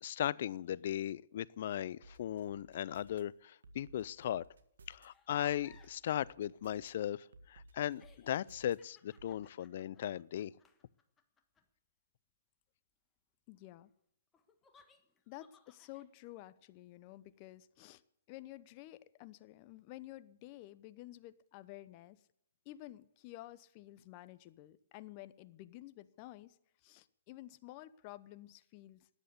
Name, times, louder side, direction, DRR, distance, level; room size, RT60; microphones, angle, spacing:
voice 1, 0.0-4.4 4.9-10.5, left 11 dB, 55° left, 0.5 m, -37 dB
sound 1, 2.0-3.2 3.6-5.1 5.5-6.9 7.3-8.8 9.2-9.3, right 2 dB, 75° right, 1.7 m, -57 dB
sound 2, 5.1-6.0 7.4-7.5 7.9-11.6 14.3-16.1, left 5 dB, 15° left, 1.4 m, -65 dB
voice 2, 13.5-13.9 15.3-18.0 18.3-22.2 22.6-29.1, left 16 dB, 35° left, 0.8 m, -52 dB
13.5 x 10.5 x 8.3 m
hypercardioid pair, 130°, 0 cm